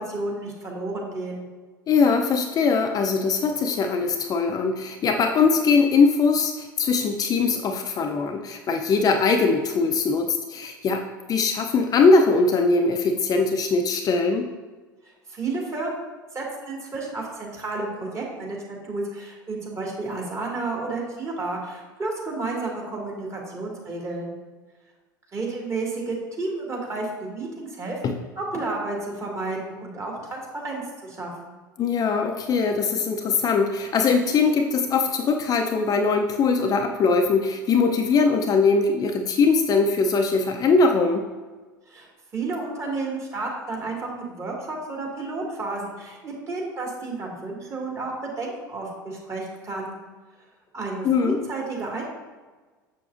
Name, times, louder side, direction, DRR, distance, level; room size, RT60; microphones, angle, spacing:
voice 1, 0.0-1.4 15.3-16.0 16.3-24.3 25.3-28.0 28.4-31.6 41.9-42.1 42.3-49.9 50.7-52.0, right 3 dB, 30° right, -2 dB, 2.1 m, -31 dB
voice 2, 1.9-14.5 28.0-28.1 31.8-41.2 51.0-51.4, left 4 dB, 35° left, 4 dB, 0.5 m, -21 dB
6.8 x 6.7 x 2.5 m, 1.3 s
hypercardioid pair, 75°, 11 cm